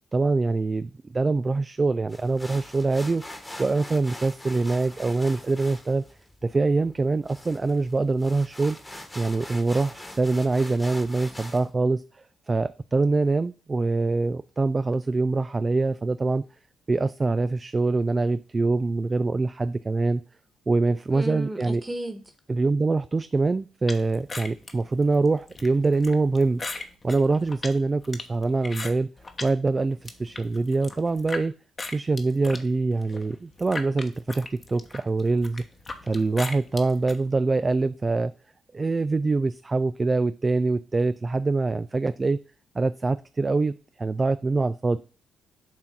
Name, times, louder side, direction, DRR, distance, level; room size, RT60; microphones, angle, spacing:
voice 1, 0.1-3.2 3.6-6.0 6.4-8.8 9.2-16.4 16.9-20.2 20.7-21.8 22.5-29.1 29.4-31.5 31.9-35.6 36.0-38.3 38.7-42.4 42.8-45.0, right 3 dB, 25° right, 0.3 m, -24 dB
sound 1, 2.1-11.7, left 1 dB, 10° left, 1.3 m, -43 dB
voice 2, 21.1-22.2, right 1 dB, 10° right, 1.4 m, -33 dB
sound 2, 23.9-29.5 29.9-31.4 31.8-37.2, left 3 dB, 30° left, 1.0 m, -38 dB
7.4 x 2.6 x 5.8 m
cardioid pair, 90°, 0 cm